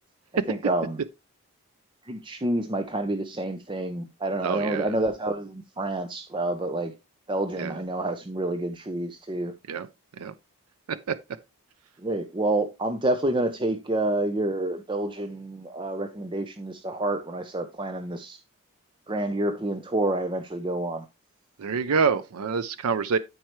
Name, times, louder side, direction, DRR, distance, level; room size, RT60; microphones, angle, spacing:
voice 1, 0.5-1.0 2.0-6.9 7.3-9.5 12.0-18.4 19.1-21.0, right 1 dB, 20° right, 0.6 m, -28 dB
voice 2, 4.4-4.9 7.6-7.8 9.7-9.9 10.1-10.3 10.9-11.2 21.6-23.2, right 5 dB, 80° right, 0.5 m, -26 dB
13.0 x 4.6 x 3.1 m
head